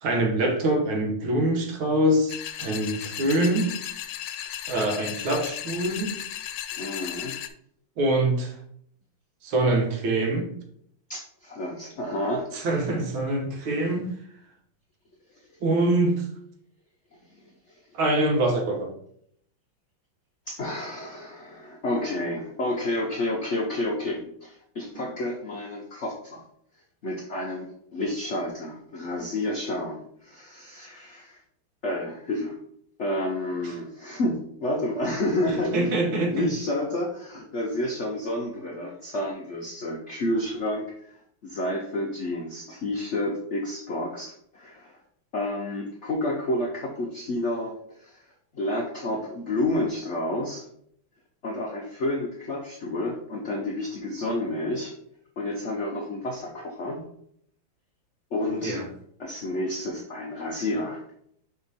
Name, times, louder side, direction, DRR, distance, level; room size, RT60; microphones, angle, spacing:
voice 1, 0.0-3.7 4.7-6.2 8.0-8.5 9.4-10.5 12.5-14.1 15.6-16.3 17.9-18.9 25.0-25.1 35.5-36.5 58.6-58.9, right 1 dB, 80° right, 3 dB, 1.9 m, -24 dB
sound 1, 2.3-7.5, left 11 dB, 85° left, 1.4 m, -35 dB
voice 2, 6.7-7.3 11.1-12.5 17.7-17.8 20.5-26.4 27.0-31.4 31.8-32.6 33.0-35.9 36.3-45.0 45.3-50.7 51.4-54.9 55.4-57.0 58.3-58.8 59.2-61.0, left 1 dB, 65° left, -1 dB, 0.7 m, -30 dB
5.2 x 4.6 x 4.0 m, 0.67 s
omnidirectional pair, 2.2 m